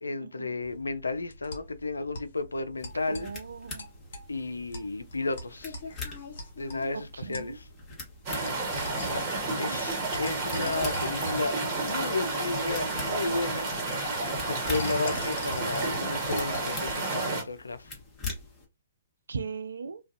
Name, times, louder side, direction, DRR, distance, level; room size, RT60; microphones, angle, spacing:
voice 1, 0.0-3.3 4.3-5.8 6.6-7.6 9.1-9.2 9.6-11.6 11.8-14.1 14.5-17.9, left 3 dB, 80° left, 0.3 m, -33 dB
sound 1, 0.6-16.8, left 1 dB, 60° left, 0.7 m, -43 dB
sound 2, 2.8-18.7, left 4 dB, 20° left, 1.1 m, -45 dB
voice 2, 3.1-3.9 7.3-7.6 9.3-9.8 19.3-20.0, right 5 dB, 70° right, 0.3 m, -38 dB
sound 3, 8.3-17.4, right 2 dB, 30° right, 1.1 m, -31 dB
2.4 x 2.2 x 2.4 m
figure-of-eight pair, 120°, 0 cm